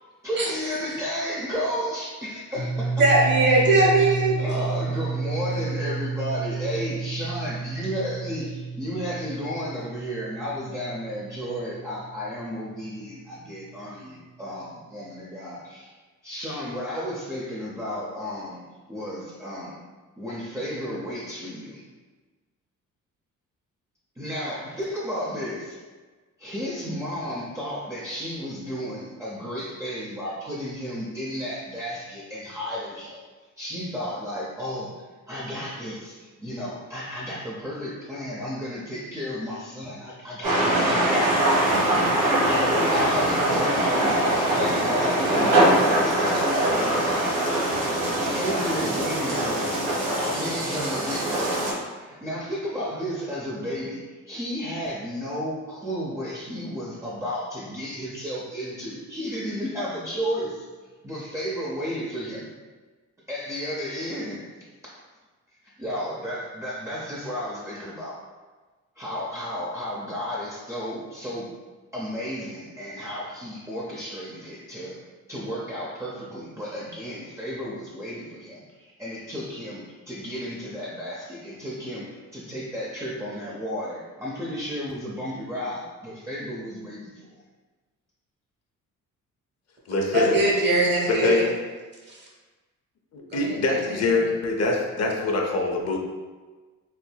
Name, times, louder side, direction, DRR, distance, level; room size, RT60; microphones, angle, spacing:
voice 1, 0.2-3.0 4.0-4.1 4.4-15.9 16.2-18.6 18.9-19.8 20.2-21.9 24.2-25.8 26.4-33.2 33.6-34.9 35.3-41.4 42.5-47.4 48.2-49.8 50.2-51.6 52.0-60.7 61.0-62.5 63.3-64.5 65.8-68.2 69.0-71.5 71.9-87.4, equal, 10° right, -7 dB, 0.6 m, -33 dB
sound 1, 2.6-13.1, right 4 dB, 90° left, 0.9 m, -31 dB
voice 2, 3.0-4.4 5.8-5.9 90.1-91.4 92.1-92.2 93.3-93.8 94.1-94.3, right 2 dB, 35° right, -3 dB, 1.1 m, -21 dB
sound 2, 40.4-51.7, right 1 dB, 85° right, 1.4 m, -23 dB
voice 3, 89.9-90.5 91.1-91.6 93.1-96.0, left 3 dB, 55° left, 1 dB, 0.6 m, -24 dB
4.3 x 2.6 x 2.2 m, 1.3 s
cardioid pair, 90°, 30 cm